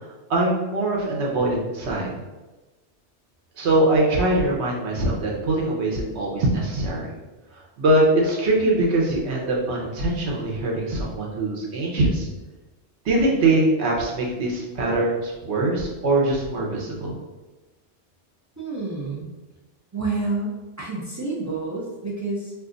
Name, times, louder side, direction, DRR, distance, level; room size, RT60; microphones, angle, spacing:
voice 1, 0.3-2.1 3.6-7.1 7.8-12.3 13.0-17.2, right 2 dB, 75° right, -2 dB, 1.1 m, -22 dB
voice 2, 18.6-19.3 19.9-22.5, right 3 dB, 30° right, -5 dB, 0.3 m, -29 dB
2.6 x 2.4 x 3.7 m, 1.1 s
omnidirectional pair, 1.2 m